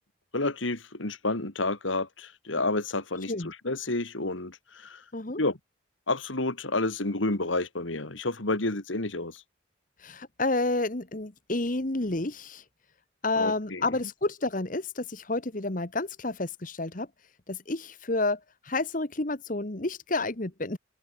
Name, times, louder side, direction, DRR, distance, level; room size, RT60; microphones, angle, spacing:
voice 1, 0.3-5.0 5.4-5.6 6.1-9.4 13.4-13.8, left 2 dB, 75° left, 2.6 m, -30 dB
voice 2, 10.0-12.6 13.2-17.1 17.5-20.8, left 2 dB, 40° left, 1.4 m, -30 dB
head